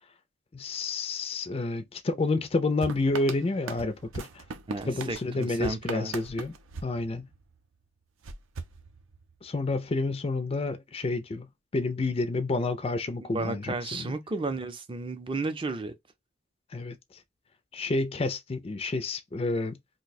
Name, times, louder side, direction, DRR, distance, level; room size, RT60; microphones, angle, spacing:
voice 1, 0.5-4.4 4.9-6.5 6.8-7.3 9.4-14.1 16.7-17.2 17.7-19.8, left 3 dB, 30° left, 0.4 m, -29 dB
sound 1, 2.8-7.7 8.2-9.5, right 4 dB, 85° right, 0.6 m, -41 dB
voice 2, 4.7-6.1 13.3-15.9, right 3 dB, 25° right, 0.5 m, -33 dB
2.7 x 2.1 x 4.1 m
head